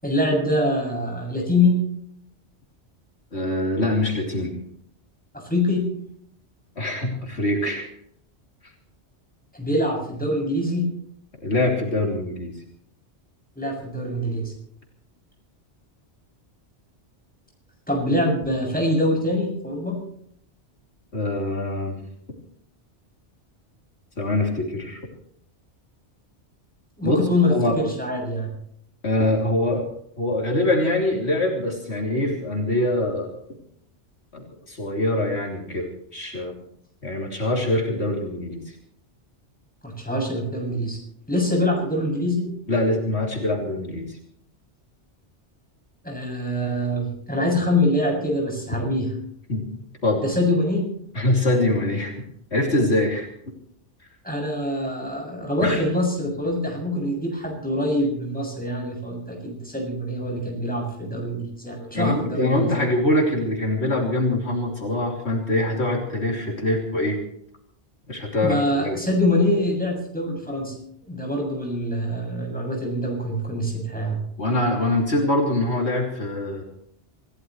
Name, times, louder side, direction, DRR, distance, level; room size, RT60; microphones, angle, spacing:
voice 1, 0.0-1.8 5.3-5.8 9.5-10.9 13.6-14.5 17.9-20.0 27.0-28.5 39.8-41.0 41.3-42.5 46.0-49.1 50.2-50.9 54.2-62.8 68.4-70.7 71.1-74.2, left 1 dB, 5° left, -1 dB, 7.4 m, -24 dB
voice 2, 3.3-4.5 6.8-7.9 11.4-12.6 21.1-22.0 24.2-25.0 27.0-27.2 27.5-27.8 29.0-29.8 30.2-33.3 34.3-36.6 37.0-38.8 42.7-44.2 49.5-49.7 50.0-50.2 51.2-52.1 52.5-53.3 55.6-55.8 61.9-67.2 68.1-69.0 74.4-76.6, left 1 dB, 70° left, -1 dB, 3.4 m, -24 dB
27.5 x 16.0 x 3.2 m, 0.70 s
omnidirectional pair, 1.2 m